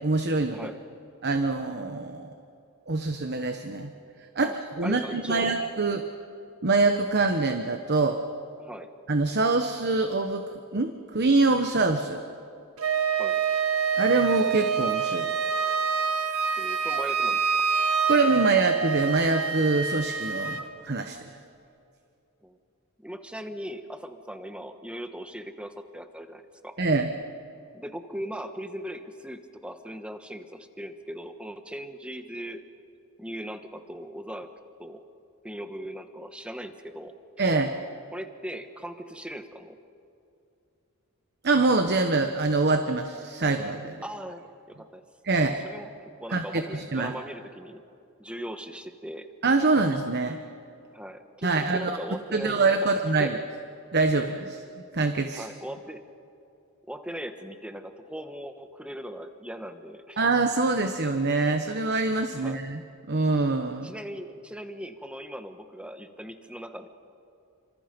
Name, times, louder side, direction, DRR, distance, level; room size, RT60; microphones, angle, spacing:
voice 1, 0.0-0.7 1.2-2.3 2.9-3.9 4.3-4.5 4.8-6.0 6.6-8.2 9.1-10.5 10.7-12.2 14.0-15.5 18.1-21.2 26.8-27.1 37.4-37.7 41.4-44.0 45.2-45.6 46.3-47.1 49.4-50.4 51.4-51.9 52.3-53.4 53.9-55.5 60.2-62.8 63.1-63.9, right 3 dB, 50° right, 6 dB, 1.2 m, -25 dB
voice 2, 4.8-5.6 8.6-8.9 13.2-13.4 16.6-17.6 18.1-18.2 22.4-22.6 23.0-26.8 27.7-32.6 33.2-35.0 35.4-37.5 38.1-39.8 44.0-45.0 45.4-47.8 48.2-49.3 50.9-53.3 55.3-56.0 56.9-60.2 62.4-62.6 63.8-66.9, equal, 5° right, 7 dB, 1.3 m, -39 dB
Wind instrument woodwind instrument, 12.8-20.7, right 6 dB, 80° right, 1.7 m, -26 dB
30.0 x 26.0 x 5.3 m, 2.6 s
head